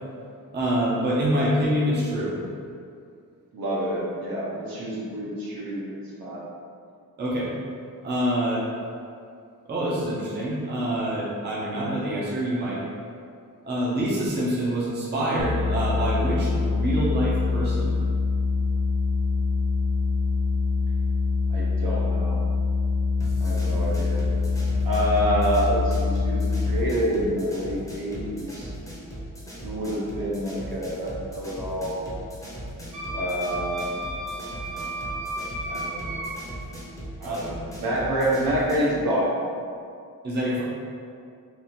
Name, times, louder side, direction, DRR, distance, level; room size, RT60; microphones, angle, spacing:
voice 1, 0.5-2.4 7.2-7.5 8.0-8.7 9.7-12.8 13.6-18.0 37.2-37.4 40.2-40.6, right 1 dB, 30° right, -6 dB, 0.6 m, -26 dB
voice 2, 3.5-6.4 21.5-22.4 23.4-24.2 24.8-28.7 29.6-32.0 33.1-36.2 37.2-39.4, equal, 70° right, -5 dB, 1.0 m, -28 dB
sound 1, 15.4-26.8, left 3 dB, 70° left, 0.5 m, -24 dB
sound 2, 23.2-38.9, right 1 dB, 10° left, 0.7 m, -39 dB
Wind instrument woodwind instrument, 32.9-36.3, right 1 dB, 50° right, 1.5 m, -33 dB
3.5 x 2.5 x 4.3 m, 2.3 s
wide cardioid pair, 160°, 36 cm